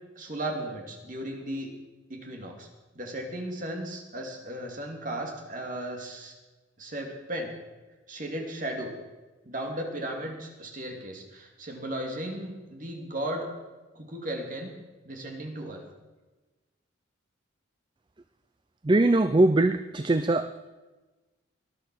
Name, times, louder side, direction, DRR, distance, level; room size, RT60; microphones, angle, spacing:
voice 1, 0.1-1.7 2.1-2.7 2.9-6.3 6.8-7.5 8.1-8.9 9.4-13.5 13.9-14.8 15.0-15.8, right 1 dB, 40° right, 1 dB, 2.8 m, -35 dB
voice 2, 18.8-20.5, right 2 dB, 25° right, 10 dB, 0.4 m, -21 dB
19.5 x 11.0 x 6.4 m, 1.2 s
head